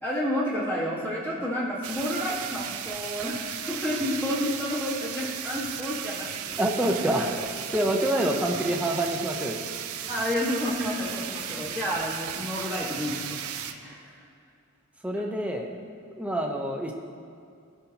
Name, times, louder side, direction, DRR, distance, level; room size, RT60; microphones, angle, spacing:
voice 1, 0.0-7.1 10.1-14.2, left 1 dB, 10° left, -7 dB, 1.5 m, -30 dB
sound 1, 1.8-13.7, right 9 dB, 80° right, 0.5 m, -35 dB
voice 2, 6.6-9.6 15.0-15.7 16.1-16.9, right 1 dB, 5° right, 1 dB, 0.7 m, -27 dB
16.5 x 5.7 x 2.9 m, 2.4 s
head